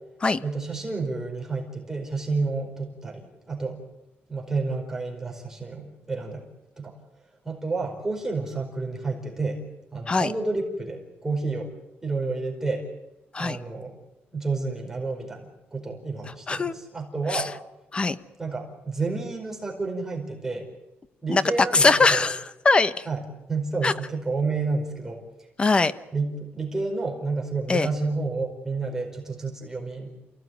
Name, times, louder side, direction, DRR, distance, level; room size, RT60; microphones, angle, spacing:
voice 1, 0.4-3.8 4.3-6.4 6.8-6.9 7.4-9.6 9.9-11.7 12.0-12.9 13.4-14.0 14.3-17.5 18.4-20.7 21.2-22.2 23.1-23.2 23.5-25.2 26.1-30.2, right 3 dB, 10° right, -1 dB, 4.8 m, -30 dB
voice 2, 21.7-23.1 23.8-23.9 25.6-25.9 27.7-27.9, left 3 dB, 25° left, 13 dB, 1.0 m, -21 dB
29.0 x 17.5 x 9.4 m, 0.94 s
cardioid pair, 155°, 4 cm